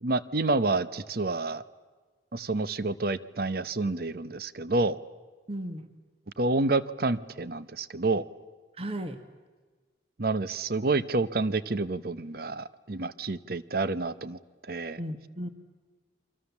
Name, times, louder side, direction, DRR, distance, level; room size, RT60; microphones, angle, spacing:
voice 1, 0.0-1.6 2.3-5.0 6.4-8.2 10.2-14.4 14.7-15.0, right 3 dB, 55° right, 15 dB, 0.9 m, -28 dB
voice 2, 5.5-5.9 8.7-9.2 15.0-15.5, right 1 dB, 35° right, 9 dB, 1.5 m, -35 dB
30.0 x 24.5 x 7.2 m, 1.4 s
head